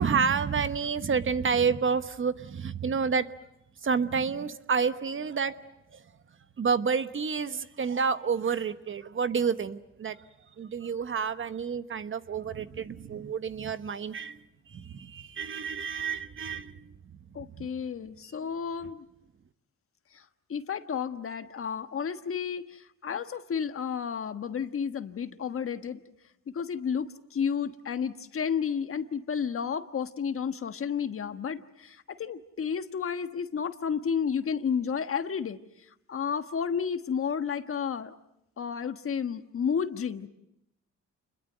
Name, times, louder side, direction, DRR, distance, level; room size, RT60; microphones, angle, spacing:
voice 1, 0.0-3.3 3.8-5.5 5.9-6.0 6.6-10.2 10.6-14.4 14.7-16.9 17.4-17.7, right 5 dB, 40° right, 12 dB, 1.1 m, -29 dB
voice 2, 17.3-19.0 20.1-20.2 20.5-26.0 26.5-35.6 36.1-38.1 38.6-40.3, left 7 dB, 45° left, 9 dB, 1.4 m, -31 dB
28.5 x 22.0 x 8.0 m, 0.82 s
cardioid pair, 90°, 30 cm